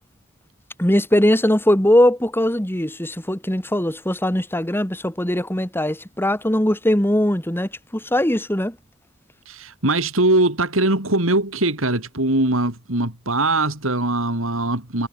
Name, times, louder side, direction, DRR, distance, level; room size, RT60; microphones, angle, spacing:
voice 1, 0.8-8.8, left 1 dB, 10° left, 2.6 m, -20 dB
voice 2, 9.5-15.1, right 2 dB, 85° right, 5.3 m, -21 dB
head